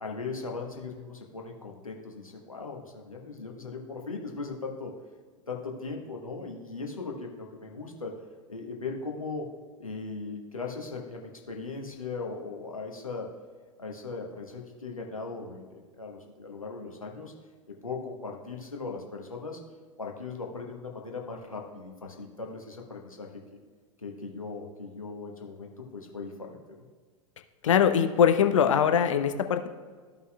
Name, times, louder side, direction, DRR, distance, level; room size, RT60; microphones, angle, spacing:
voice 1, 0.0-4.9 5.5-8.1 8.5-9.5 9.8-13.3 13.8-17.3 17.8-19.6 20.0-23.6 24.0-26.6, left 4 dB, 85° left, 1 dB, 1.3 m, -38 dB
voice 2, 27.6-29.7, left 8 dB, 65° left, 8 dB, 0.7 m, -22 dB
15.0 x 5.5 x 2.3 m, 1.6 s
figure-of-eight pair, 90°, 18 cm